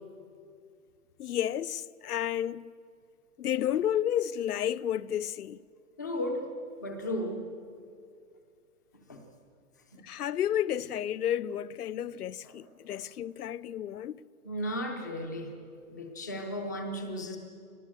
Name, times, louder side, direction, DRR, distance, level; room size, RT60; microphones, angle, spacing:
voice 1, 1.2-2.7 3.4-5.6 10.0-14.2, left 10 dB, 80° left, 0.7 m, -31 dB
voice 2, 6.0-6.5 6.8-7.5 9.1-9.2 9.9-10.0 12.4-13.0 14.4-15.5 15.9-17.4, equal, 10° left, 0.6 m, -35 dB
22.0 x 19.0 x 7.7 m
hypercardioid pair, 165°, 45 cm